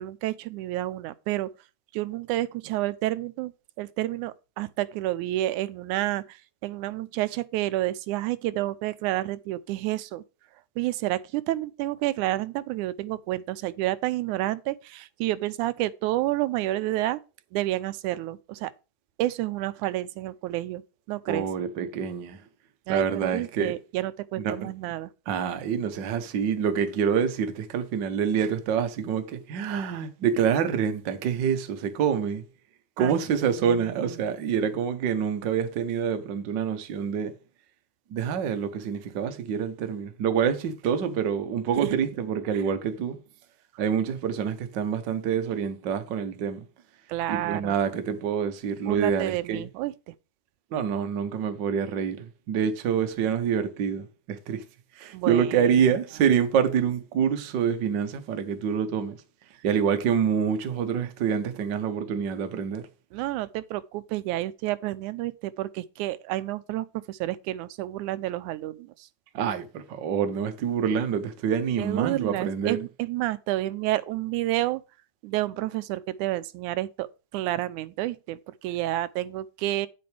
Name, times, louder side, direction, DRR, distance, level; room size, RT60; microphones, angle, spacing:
voice 1, 0.0-1.5 1.9-3.5 3.8-10.2 10.8-17.2 17.5-18.7 19.2-20.8 21.1-21.5 22.9-25.1 33.0-33.2 33.6-34.3 41.8-42.0 42.5-42.6 47.1-47.8 48.9-50.1 55.1-55.7 63.1-69.1 71.8-74.8 75.2-77.1 77.3-79.9, right 15 dB, 80° right, 2.1 m, -30 dB
voice 2, 21.3-22.4 22.9-23.7 24.4-24.7 25.3-32.4 33.0-37.3 38.1-43.2 43.8-46.6 47.3-49.6 50.7-54.6 55.0-59.2 59.6-62.9 69.3-72.8, right 7 dB, 65° right, 1.1 m, -26 dB
9.4 x 7.7 x 3.4 m
omnidirectional pair, 3.5 m